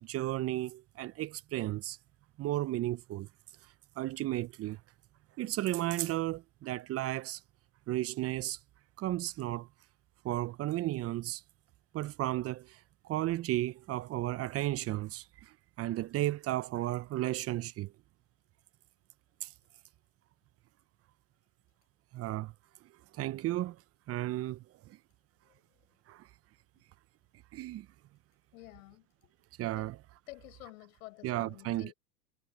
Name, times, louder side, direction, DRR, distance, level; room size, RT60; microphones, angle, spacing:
voice 1, 0.0-2.0 2.4-3.3 4.0-4.8 5.4-7.4 7.9-8.6 9.0-9.7 10.2-11.4 11.9-12.8 13.0-17.9 19.4-19.5 22.1-22.5 23.1-23.8 24.1-24.6 26.1-26.3 27.5-27.9 29.6-30.0 31.2-31.9, right 15 dB, 30° right, 1.1 m, -34 dB
voice 2, 25.4-25.9 28.5-29.3 29.7-29.9 30.3-31.9, left 20 dB, 60° left, 6.7 m, -51 dB
hypercardioid pair, 105°, 47 cm